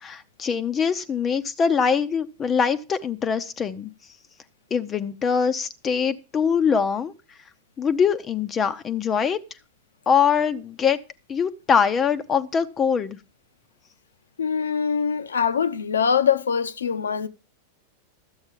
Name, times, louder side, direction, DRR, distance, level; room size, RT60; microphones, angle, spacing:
voice 1, 0.0-3.9 4.7-7.1 7.8-9.4 10.1-11.0 11.3-13.2, left 6 dB, 25° left, 0.8 m, -23 dB
voice 2, 14.4-17.3, left 7 dB, 70° left, 0.9 m, -23 dB
13.0 x 8.0 x 5.3 m
figure-of-eight pair, 90°, 0 cm